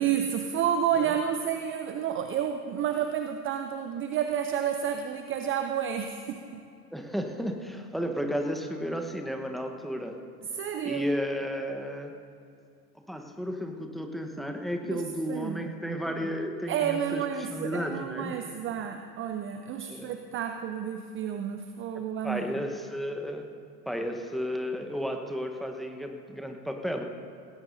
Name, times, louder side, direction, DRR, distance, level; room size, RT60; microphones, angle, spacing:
voice 1, 0.0-6.6 10.5-11.0 14.8-15.7 16.7-22.5, right 9 dB, 25° right, 7 dB, 0.6 m, -30 dB
voice 2, 6.9-10.2 10.8-12.1 13.1-18.3 19.9-20.1 21.9-23.4 23.9-27.0, equal, ahead, 4 dB, 1.1 m, -33 dB
18.0 x 17.0 x 2.7 m, 2.5 s
hypercardioid pair, 90°, 49 cm